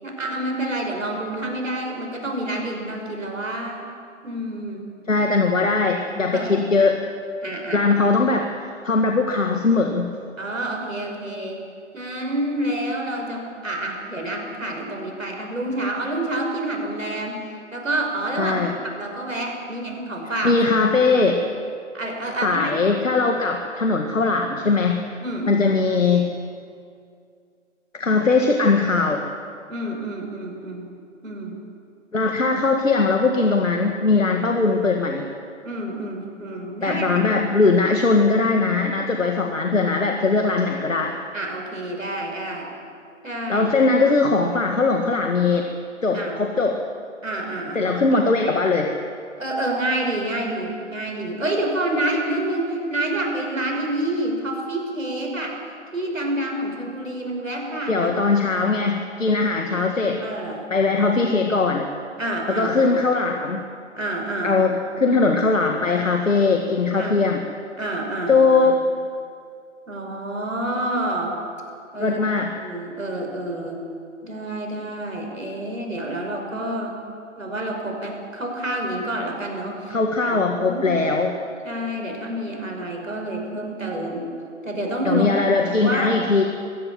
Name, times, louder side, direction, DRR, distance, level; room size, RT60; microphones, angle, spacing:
voice 1, 0.0-3.8 4.2-4.8 6.3-6.6 7.4-7.8 10.4-11.6 11.9-20.6 21.0-21.4 21.9-22.9 25.2-25.7 29.7-30.9 31.2-31.6 34.3-34.4 35.6-37.4 41.3-42.7 43.2-43.7 46.1-46.4 47.2-48.2 49.4-55.6 55.9-58.4 60.2-60.7 62.2-62.8 64.0-64.6 67.0-67.3 67.8-68.7 69.9-71.3 71.9-72.2 72.6-73.8 74.2-76.9 77.4-80.0 80.2-80.9 81.6-84.2 84.6-86.2, right 1 dB, 85° right, 1 dB, 5.8 m, -28 dB
voice 2, 5.1-7.0 7.7-10.1 18.4-18.7 20.4-21.5 22.4-25.0 25.5-26.3 27.9-29.2 32.1-35.2 36.8-41.1 43.5-45.7 46.0-46.8 47.8-48.9 57.9-60.2 60.7-61.9 62.5-63.7 64.4-67.4 68.3-68.9 72.0-72.6 79.9-81.3 85.0-86.4, left 3 dB, 80° left, 3 dB, 1.9 m, -20 dB
22.5 x 15.5 x 7.4 m, 2.3 s
figure-of-eight pair, 140°, 38 cm